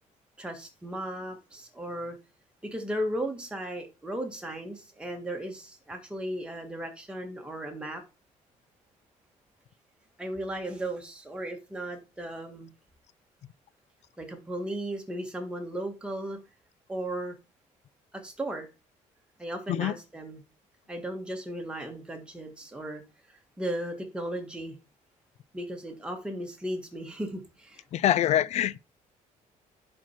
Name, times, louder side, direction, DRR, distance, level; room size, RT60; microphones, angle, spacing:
voice 1, 0.4-2.2 2.6-8.0 10.2-12.7 14.2-16.4 16.9-17.3 18.1-18.7 19.4-20.4 20.9-23.0 23.6-24.8 25.5-27.8, right 1 dB, 5° right, 1.6 m, -36 dB
voice 2, 27.9-28.8, left 11 dB, 55° left, 0.4 m, -24 dB
10.5 x 4.4 x 4.5 m
cardioid pair, 165°, 14 cm